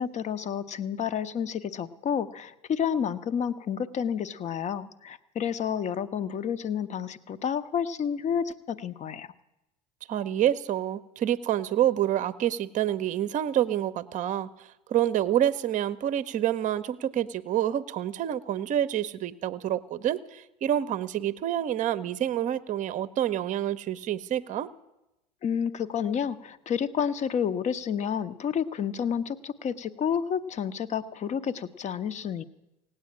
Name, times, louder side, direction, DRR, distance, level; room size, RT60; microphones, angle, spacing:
voice 1, 0.0-9.3 25.4-32.4, left 8 dB, 35° left, 13 dB, 0.8 m, -30 dB
voice 2, 10.1-24.7, right 11 dB, 40° right, 14 dB, 0.7 m, -28 dB
17.5 x 8.9 x 8.6 m, 0.92 s
figure-of-eight pair, 70°, 21 cm